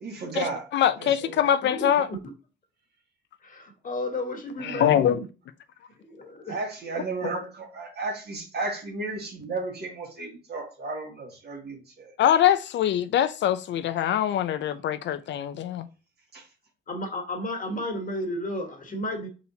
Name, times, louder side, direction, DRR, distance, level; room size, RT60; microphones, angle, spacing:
voice 1, 0.0-0.7 1.0-1.5 4.6-4.9 6.5-12.1 16.3-16.5, right 3 dB, 55° right, 2.0 m, -34 dB
voice 2, 0.7-2.1 4.6-5.2 12.2-15.9, left 10 dB, 65° left, 0.4 m, -23 dB
voice 3, 1.6-2.2 3.4-5.3 6.0-6.6 16.9-19.3, left 1 dB, 45° left, 1.6 m, -33 dB
4.1 x 4.0 x 2.7 m
cardioid pair, 90°, 20 cm